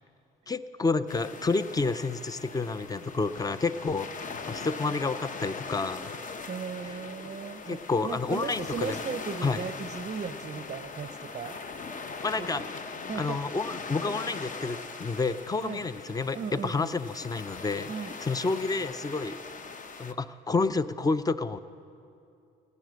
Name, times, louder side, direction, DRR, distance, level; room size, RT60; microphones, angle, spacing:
voice 1, 0.5-6.2 7.7-9.0 9.4-9.6 12.2-12.6 13.2-17.9 18.2-19.4 20.0-21.6, left 3 dB, 20° left, 14 dB, 0.5 m, -29 dB
sound 1, 1.1-20.1, left 4 dB, 40° left, 0.8 m, -41 dB
Laughter, 4.7-19.7, left 3 dB, 75° left, 1.5 m, -56 dB
voice 2, 6.4-11.6 12.4-12.6 13.1-13.4 15.6-15.8 16.3-16.9 17.9-18.1, right 6 dB, 35° right, 12 dB, 0.5 m, -37 dB
15.5 x 9.6 x 7.7 m, 2.6 s
cardioid pair, 90°, 20 cm